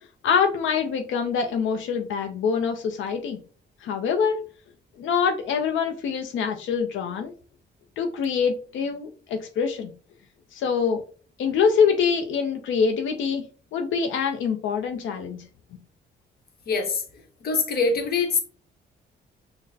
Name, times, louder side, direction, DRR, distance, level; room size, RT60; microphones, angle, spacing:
voice 1, 0.2-3.4 3.8-4.4 5.0-7.3 8.0-9.9 10.5-11.0 11.4-13.4 13.7-15.4, left 6 dB, 85° left, 0.5 m, -24 dB
voice 2, 16.7-17.0 17.4-18.4, left 4 dB, 55° left, 0.9 m, -23 dB
5.8 x 2.1 x 2.7 m
cardioid pair, 150°, 19 cm